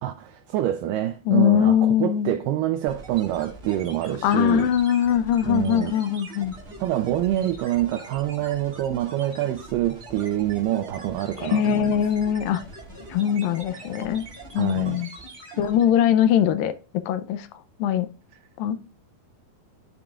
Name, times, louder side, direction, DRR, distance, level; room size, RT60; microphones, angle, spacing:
voice 1, 0.0-4.7 5.5-5.9 6.8-12.0 14.6-15.0, right 13 dB, 85° right, 1.9 m, -26 dB
voice 2, 1.3-2.3 4.2-6.5 11.4-12.6 13.1-14.3 14.5-15.1 15.6-17.5 17.8-18.1 18.6-18.8, left 10 dB, 80° left, 2.2 m, -21 dB
sound 1, 2.9-16.0, right 2 dB, 30° right, 1.1 m, -42 dB
12.5 x 4.9 x 2.3 m
omnidirectional pair, 4.3 m